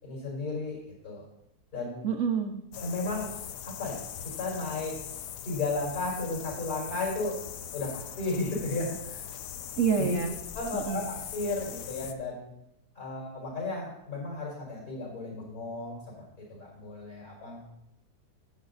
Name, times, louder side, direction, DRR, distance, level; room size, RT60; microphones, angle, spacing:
voice 1, 0.0-0.8 1.0-1.3 1.7-2.1 2.8-3.3 3.6-4.0 4.4-5.0 5.4-7.4 7.7-9.2 9.9-12.5 13.0-17.7, left 3 dB, 55° left, -3 dB, 5.4 m, -34 dB
voice 2, 2.0-2.6 9.8-10.4 10.7-11.0, right 6 dB, 60° right, 4 dB, 1.0 m, -28 dB
sound 1, 2.7-12.1, left 9 dB, 80° left, 1.3 m, -41 dB
11.5 x 8.9 x 4.0 m, 0.80 s
omnidirectional pair, 1.8 m